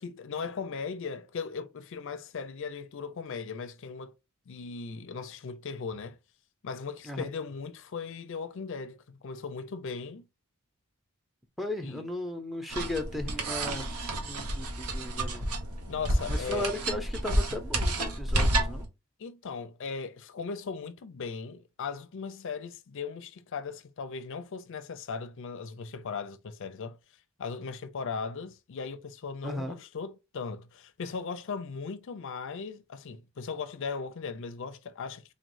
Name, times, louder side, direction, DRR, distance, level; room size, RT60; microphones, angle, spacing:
voice 1, 0.0-4.1 4.5-6.2 6.6-10.3 11.8-12.1 15.9-16.7 19.2-27.0 27.4-35.2, left 5 dB, 60° left, 0.5 m, -38 dB
voice 2, 11.6-13.8 14.3-15.5 16.3-18.9 29.4-29.8, left 1 dB, ahead, 0.6 m, -36 dB
sound 1, 12.7-18.8, right 1 dB, 85° right, 1.0 m, -30 dB
4.0 x 3.1 x 2.6 m
head